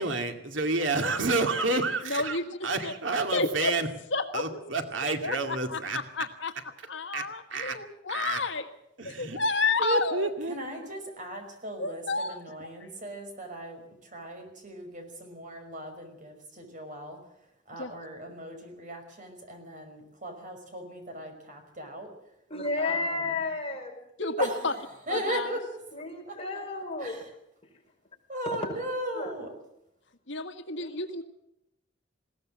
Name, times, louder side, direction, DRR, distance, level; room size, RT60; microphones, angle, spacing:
voice 1, 0.0-2.4 2.6-3.9 4.3-6.0 7.1-7.8 8.1-8.4 9.0-9.4 9.8-10.8, right 3 dB, 85° right, 5 dB, 2.4 m, -29 dB
voice 2, 2.0-2.9 3.3-3.7 4.1-4.6 5.0-6.5 6.9-8.7 9.0-10.3 11.8-12.4 17.8-17.9 24.2-24.7 25.1-25.5 30.3-31.2, left 3 dB, 75° left, 6 dB, 1.9 m, -30 dB
voice 3, 10.4-22.1 22.8-23.4 24.4-25.8 26.3-26.4 27.0-27.3 28.3-29.6, right 1 dB, 45° right, 5 dB, 5.5 m, -38 dB
voice 4, 22.5-24.0 25.9-27.2 29.1-29.3 30.8-30.9, left 3 dB, 30° left, 1 dB, 5.3 m, -32 dB
21.0 x 17.5 x 7.6 m, 0.82 s
head